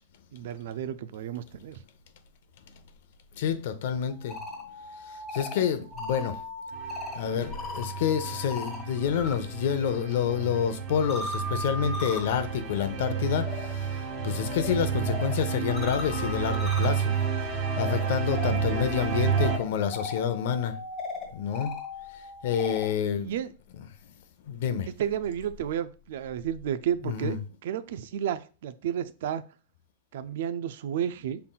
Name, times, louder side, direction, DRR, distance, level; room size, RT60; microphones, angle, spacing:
voice 1, 0.3-1.8 23.1-23.5 24.9-27.4 27.6-29.5 30.1-31.4, right 9 dB, 70° right, 0.4 m, -32 dB
voice 2, 3.3-4.4 5.1-6.4 7.1-17.2 17.5-20.8 21.3-21.7 22.1-23.3 24.5-24.9 27.0-27.4, left 8 dB, 65° left, 0.6 m, -28 dB
sound 1, 4.1-9.3 9.7-22.9, left 3 dB, 25° left, 1.5 m, -39 dB
sound 2, 6.7-19.6, right 7 dB, 45° right, 1.2 m, -31 dB
5.6 x 3.8 x 2.3 m
supercardioid pair, 145°, 0 cm